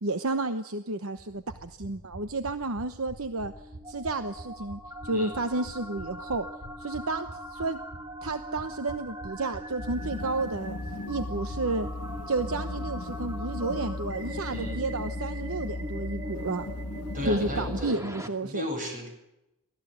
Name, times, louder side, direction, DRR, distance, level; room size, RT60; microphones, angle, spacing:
voice 1, 0.0-3.5 3.9-6.4 6.8-7.8 8.2-10.8 11.1-11.9 12.3-16.7 17.3-18.7, right 2 dB, 65° right, 9 dB, 1.0 m, -31 dB
sound 1, 1.2-12.9 13.2-13.3 13.5-13.6, right 1 dB, 85° right, 5.9 m, -46 dB
sound 2, 3.2-18.3, equal, 15° right, 2.3 m, -41 dB
sound 3, 9.8-17.9, left 2 dB, 75° left, 1.1 m, -37 dB
voice 2, 14.5-14.8 17.1-18.0 18.4-19.1, equal, 35° right, 3 dB, 7.7 m, -34 dB
24.0 x 16.5 x 8.1 m, 0.91 s
head